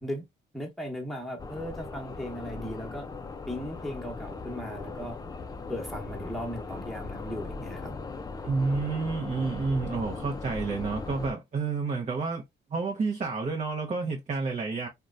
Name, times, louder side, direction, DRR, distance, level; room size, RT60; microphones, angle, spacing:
voice 1, 0.5-3.1 3.5-5.2 5.7-8.0, equal, ahead, 1.0 m, -37 dB
sound 1, 1.4-11.3, left 3 dB, 20° left, 0.4 m, -39 dB
voice 2, 8.4-12.4 12.7-14.9, right 4 dB, 35° right, 0.7 m, -30 dB
2.9 x 2.2 x 2.4 m
cardioid pair, 90°, 20 cm